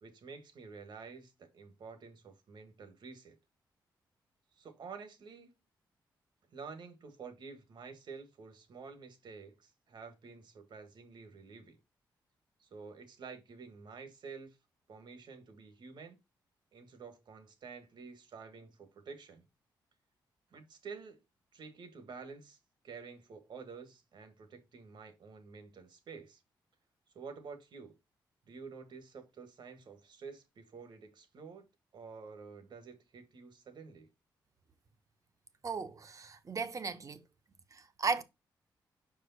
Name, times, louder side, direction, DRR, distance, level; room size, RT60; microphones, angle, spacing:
voice 1, 0.0-3.4 4.6-5.5 6.5-11.8 12.6-14.6 14.9-16.2 16.7-19.5 20.5-21.2 21.5-22.6 22.8-26.4 27.1-27.9 28.4-31.7 31.9-34.1, right 5 dB, 70° right, 1.7 m, -50 dB
voice 2, 35.6-37.2 37.7-38.2, right 5 dB, 40° right, 1.0 m, -36 dB
5.3 x 4.9 x 4.1 m
cardioid pair, 75°, 8 cm